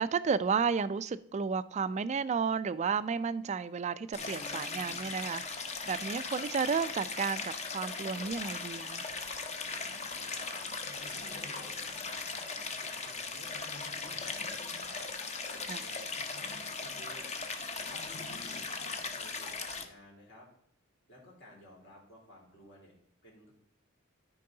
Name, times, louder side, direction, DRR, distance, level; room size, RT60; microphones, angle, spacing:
voice 1, 0.0-5.4 5.9-9.0 15.7-15.8, right 5 dB, 30° right, 0.3 m, -32 dB
Stream, 4.1-19.9, left 4 dB, 30° left, 0.8 m, -38 dB
voice 2, 9.7-15.1 15.5-16.1 16.5-20.5 21.1-22.9 23.2-23.5, left 1 dB, 55° left, 3.3 m, -56 dB
13.0 x 4.7 x 3.8 m
head